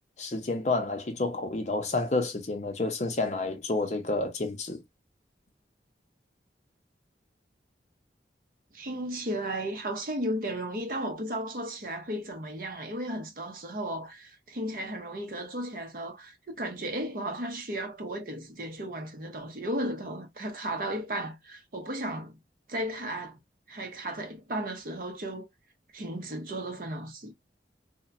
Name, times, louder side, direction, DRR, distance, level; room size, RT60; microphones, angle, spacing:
voice 1, 0.2-4.8, left 2 dB, 40° left, 0.6 m, -29 dB
voice 2, 8.7-22.4 22.7-23.4 23.7-25.5 25.9-27.3, right 1 dB, 50° right, 0.7 m, -35 dB
2.9 x 2.2 x 2.5 m
head